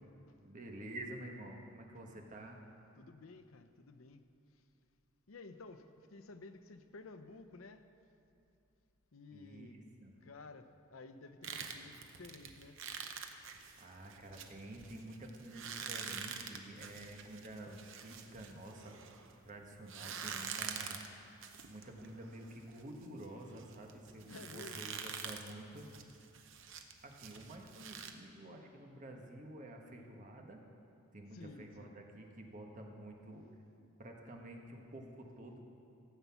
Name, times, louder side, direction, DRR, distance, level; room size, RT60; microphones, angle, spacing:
voice 1, 0.4-2.6 9.3-10.1 13.8-19.1 19.4-21.0 21.7-25.9 27.0-30.6 31.1-33.5 34.0-35.6, right 1 dB, 40° right, 2 dB, 1.3 m, -50 dB
voice 2, 3.0-4.2 4.5-4.6 5.3-7.9 9.1-9.8 10.2-12.8 24.2-24.9 31.3-32.0, left 3 dB, 80° left, 10 dB, 0.7 m, -53 dB
sound 1, 11.4-19.4 19.9-28.1, right 7 dB, 65° right, 0.8 m, -46 dB
15.0 x 8.1 x 5.8 m, 2.7 s
head